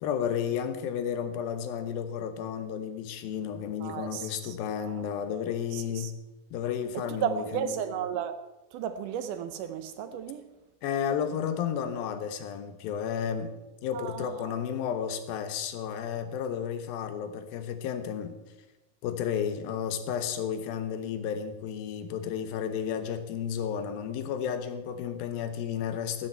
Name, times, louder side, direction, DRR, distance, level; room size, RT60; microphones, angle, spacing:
voice 1, 0.0-6.2 6.5-7.9 10.8-13.5 13.8-18.4 19.0-26.3, left 8 dB, 85° left, 2.9 m, -32 dB
voice 2, 3.8-5.1 5.7-6.1 6.9-8.4 8.7-10.5 13.9-14.5, right 9 dB, 75° right, 2.0 m, -34 dB
15.0 x 12.0 x 4.5 m
omnidirectional pair, 4.1 m